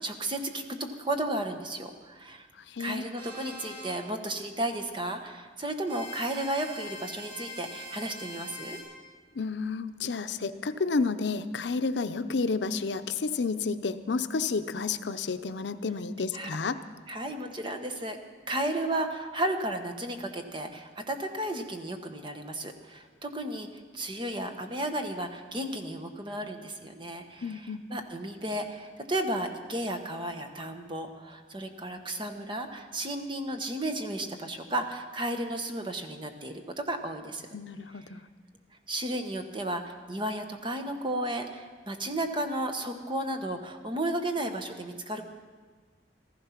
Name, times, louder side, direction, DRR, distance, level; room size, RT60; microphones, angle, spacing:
voice 1, 0.0-2.5 2.8-8.8 16.3-16.6 17.1-18.2 18.5-23.7 23.9-37.5 38.9-45.2, right 1 dB, 30° right, 6 dB, 1.2 m, -33 dB
voice 2, 2.7-3.1 9.3-16.8 27.4-27.8 37.5-38.2, left 4 dB, 80° left, 11 dB, 0.6 m, -31 dB
sound 1, 3.2-3.9 5.9-8.8, left 1 dB, 70° right, 5.6 m, -43 dB
15.0 x 14.5 x 5.8 m, 1.5 s
head